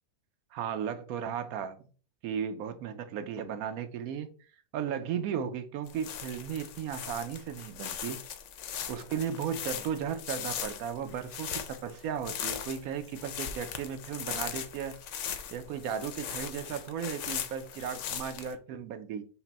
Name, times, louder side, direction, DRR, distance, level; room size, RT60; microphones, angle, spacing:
voice 1, 0.5-1.8 2.2-4.3 4.7-8.2 8.9-15.0 15.5-19.2, right 8 dB, 70° right, 0.9 m, -35 dB
sound 1, 5.9-18.5, left 8 dB, 70° left, 0.7 m, -39 dB
5.9 x 2.1 x 4.1 m
omnidirectional pair, 1.8 m